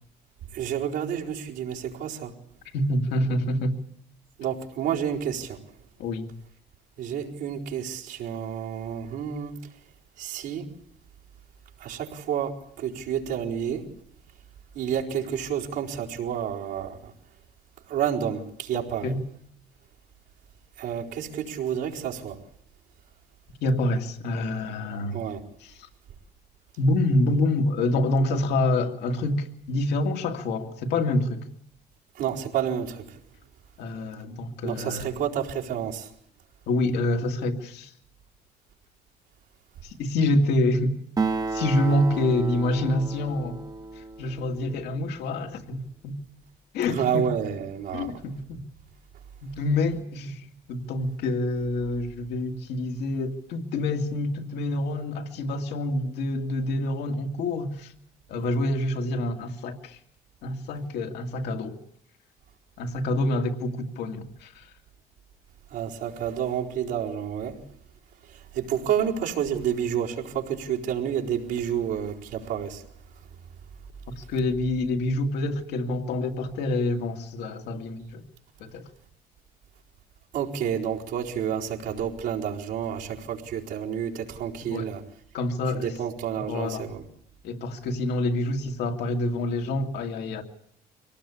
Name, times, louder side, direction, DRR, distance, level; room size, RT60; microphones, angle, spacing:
voice 1, 0.5-2.3 4.4-5.6 7.0-9.5 10.2-10.7 11.8-13.9 14.7-17.1 17.9-19.1 20.8-22.4 25.1-25.4 32.1-33.2 34.6-36.1 46.8-48.1 65.7-67.6 68.3-72.8 80.3-85.0 85.7-87.0, right 9 dB, 85° right, -3 dB, 4.3 m, -30 dB
voice 2, 2.7-3.8 6.0-6.3 19.0-19.2 23.6-25.2 25.6-25.9 26.8-31.5 33.8-35.1 36.7-37.9 39.8-41.0 41.5-43.6 44.0-46.2 46.7-47.3 47.9-48.6 49.4-57.9 58.3-60.0 60.4-61.8 62.8-64.7 74.2-78.2 78.6-78.8 84.7-84.9 85.3-85.9 86.5-86.9 87.4-90.4, left 1 dB, 80° left, 4 dB, 2.2 m, -27 dB
Acoustic guitar, 41.2-45.0, right 3 dB, 20° right, 1.0 m, -32 dB
24.0 x 18.5 x 8.5 m, 0.70 s
cardioid pair, 110°, 17 cm